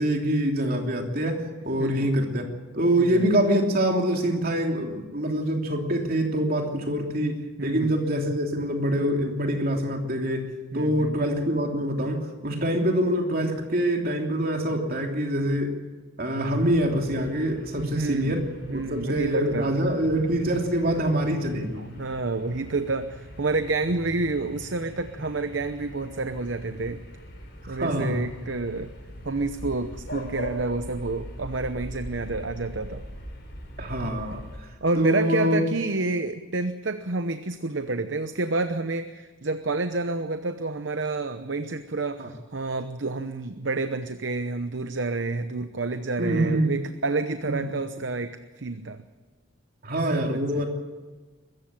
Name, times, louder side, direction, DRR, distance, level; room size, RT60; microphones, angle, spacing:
voice 1, 0.0-2.5 2.7-10.5 10.7-15.7 16.2-18.4 18.7-21.8 27.7-28.2 33.8-34.4 35.0-35.6 42.2-42.3 46.2-46.8 47.4-47.7 49.8-50.7, right 1 dB, 50° right, 2 dB, 3.1 m, -25 dB
voice 2, 1.8-2.1 3.0-3.3 7.6-7.9 10.7-11.2 17.8-19.8 21.8-27.0 27.7-28.9 29.2-33.0 34.8-49.0 50.1-50.6, right 3 dB, 65° right, 9 dB, 0.9 m, -29 dB
sound 1, 16.5-34.6, equal, 55° left, 4.9 m, -41 dB
22.5 x 14.5 x 8.8 m, 1.3 s
head